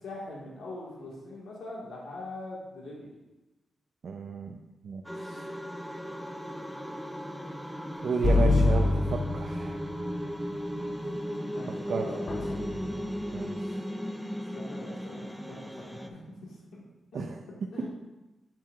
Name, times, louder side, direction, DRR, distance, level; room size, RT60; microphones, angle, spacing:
voice 1, 0.0-3.1 11.5-11.7 12.0-12.2 14.5-16.2 16.7-16.8 17.1-17.2 17.7-17.9, left 2 dB, 90° left, -4 dB, 1.8 m, -42 dB
voice 2, 4.0-5.4 8.0-9.8 11.7-12.1 13.3-13.7 17.1-17.4 17.8-17.9, right 5 dB, 65° right, 2 dB, 0.6 m, -33 dB
sound 1, 5.0-16.1, equal, ahead, 0.6 m, -36 dB
sound 2, 8.2-10.0 12.3-13.2, left 2 dB, 50° left, 0.7 m, -25 dB
7.3 x 7.3 x 2.5 m, 1.0 s
cardioid pair, 80°, 0 cm